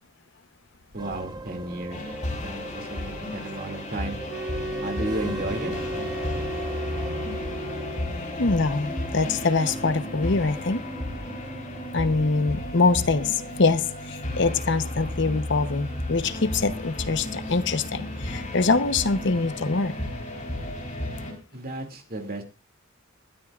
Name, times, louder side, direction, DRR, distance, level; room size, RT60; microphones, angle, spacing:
voice 1, 0.9-2.0 2.3-4.2 4.8-5.7 21.5-22.4, right 1 dB, 45° right, 4 dB, 2.5 m, -33 dB
sound 1, 1.0-19.5, right 1 dB, 20° right, 1.1 m, -41 dB
sound 2, 1.9-21.3, left 1 dB, 35° left, 4.3 m, -34 dB
sound 3, 4.3-8.2, right 1 dB, 65° right, 2.3 m, -34 dB
voice 2, 8.4-10.8 11.9-19.9, left 3 dB, 60° left, 12 dB, 0.9 m, -24 dB
20.0 x 13.0 x 2.5 m, 0.29 s
head